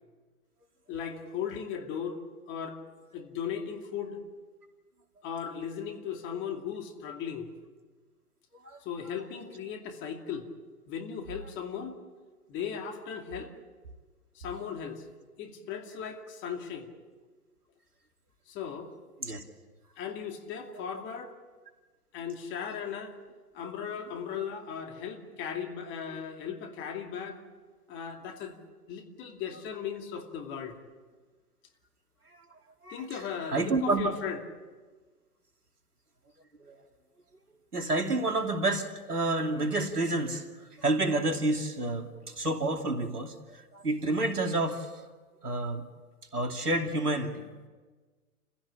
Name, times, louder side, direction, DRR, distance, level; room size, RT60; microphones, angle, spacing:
voice 1, 0.9-2.2 2.5-2.8 3.1-4.2 5.2-7.5 8.8-10.5 10.9-12.0 12.5-13.5 14.3-15.0 15.4-16.9 18.5-18.9 20.0-21.3 22.1-23.1 23.5-27.4 27.9-28.5 28.9-30.8 32.9-34.4, left 7 dB, 25° left, 4 dB, 2.5 m, -37 dB
voice 2, 32.8-34.1 36.6-36.8 37.7-45.0 45.4-45.8 46.3-47.4, right 2 dB, 85° right, 5 dB, 2.7 m, -29 dB
29.5 x 16.0 x 8.6 m, 1.4 s
figure-of-eight pair, 115°, 45 cm